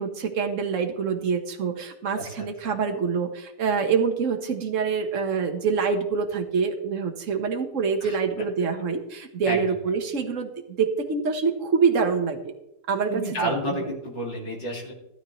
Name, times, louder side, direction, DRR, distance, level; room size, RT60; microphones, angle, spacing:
voice 1, 0.0-10.5 10.8-12.5 12.9-13.9, right 5 dB, 45° right, 4 dB, 1.6 m, -26 dB
voice 2, 2.1-2.7 8.0-8.2 9.4-9.6 13.1-14.9, right 1 dB, 60° left, -3 dB, 3.1 m, -30 dB
14.5 x 13.0 x 3.2 m, 0.85 s
omnidirectional pair, 2.1 m